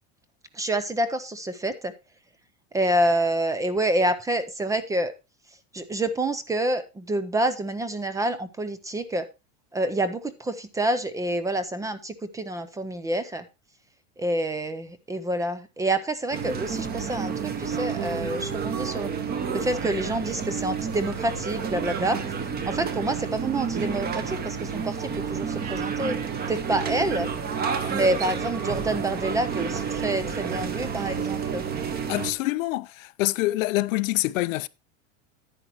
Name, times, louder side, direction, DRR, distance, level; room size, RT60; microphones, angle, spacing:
voice 1, 0.5-1.9 2.7-5.1 5.7-9.3 9.7-13.4 14.2-19.1 19.5-22.2 22.7-26.2 26.5-27.3 27.9-31.6, right 1 dB, 10° right, 0.4 m, -27 dB
sound 1, 16.3-32.3, right 6 dB, 25° right, 1.1 m, -30 dB
voice 2, 32.1-34.7, left 18 dB, 85° left, 0.7 m, -26 dB
10.0 x 9.4 x 2.9 m
supercardioid pair, 150°, 39 cm